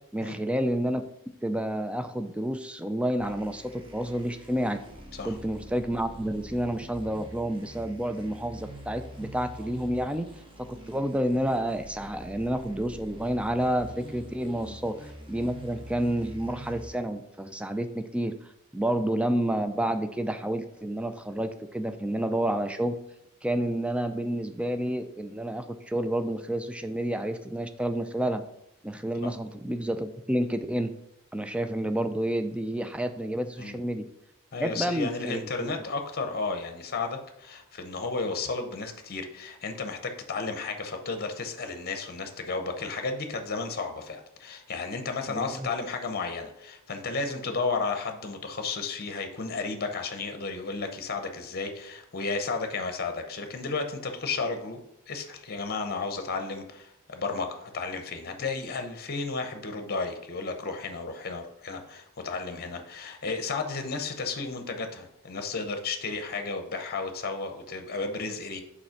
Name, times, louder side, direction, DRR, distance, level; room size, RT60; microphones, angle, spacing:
voice 1, 0.1-1.0 1.4-4.8 5.2-10.3 10.6-18.3 18.7-23.0 23.4-28.4 28.8-30.9 31.3-34.0 34.6-35.7 45.3-45.7, right 1 dB, 5° right, 8 dB, 0.4 m, -29 dB
sound 1, 3.2-16.9, right 1 dB, 25° right, 1.1 m, -45 dB
voice 2, 34.5-54.8 55.1-68.6, left 4 dB, 45° left, 6 dB, 0.8 m, -33 dB
5.4 x 4.2 x 5.7 m, 0.81 s
head